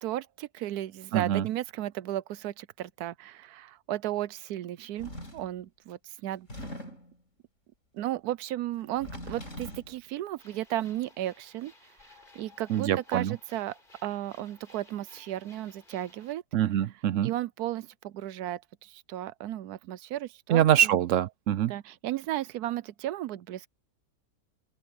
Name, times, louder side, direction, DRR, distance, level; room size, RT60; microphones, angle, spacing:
voice 1, 0.0-6.5 7.9-11.7 12.3-16.4 17.2-21.0 21.6-23.7, right 13 dB, 85° right, 1.2 m, -34 dB
voice 2, 1.1-1.4 12.7-13.3 16.5-17.3 20.5-21.7, right 11 dB, 70° right, 0.8 m, -24 dB
sound 1, 5.0-5.5 6.3-7.2 8.8-9.9, left 1 dB, 55° left, 6.4 m, -41 dB
sound 2, 10.4-16.3, left 2 dB, 30° left, 4.8 m, -58 dB
open air
omnidirectional pair, 1.6 m